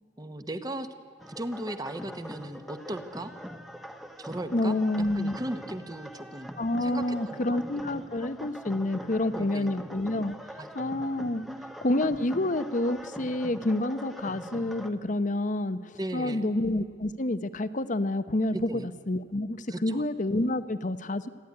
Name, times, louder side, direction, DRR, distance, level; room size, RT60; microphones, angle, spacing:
voice 1, 0.2-0.9 1.3-3.3 4.2-6.5 6.8-7.4 7.7-7.9 9.3-9.8 10.6-11.0 11.4-11.7 16.0-16.5 18.5-18.9 19.7-20.0, right 1 dB, 20° right, 10 dB, 1.1 m, -37 dB
sound 1, 1.2-14.9, equal, ahead, 1.1 m, -43 dB
voice 2, 4.5-5.4 6.6-10.3 10.7-11.4 11.8-15.8 16.1-21.3, left 1 dB, 45° left, 13 dB, 0.8 m, -28 dB
28.0 x 11.0 x 9.7 m, 2.2 s
head